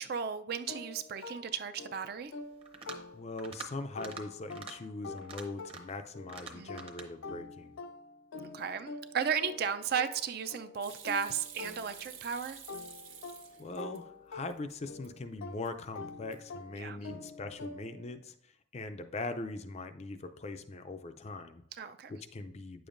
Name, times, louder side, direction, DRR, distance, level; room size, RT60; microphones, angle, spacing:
voice 1, 0.0-2.3 6.5-6.9 8.5-12.6 16.7-17.0 21.8-22.1, right 7 dB, 50° right, 10 dB, 0.4 m, -35 dB
sound 1, 0.7-3.5 3.9-12.3 12.7-18.1, left 3 dB, 80° left, 0.6 m, -47 dB
sound 2, 2.6-3.1 3.4-3.7 4.0-4.2 4.5-4.7 5.2-6.0 6.3-7.1, right 4 dB, 25° right, 0.8 m, -45 dB
voice 2, 3.1-7.7 13.6-18.3 18.7-21.6 22.1-22.9, left 2 dB, 30° left, 9 dB, 0.4 m, -41 dB
Hands / Sink (filling or washing), 10.8-14.0 14.4-15.1 15.4-15.9 16.2-16.6, right 8 dB, 80° right, 1.2 m, -50 dB
9.2 x 6.9 x 2.5 m, 0.72 s
head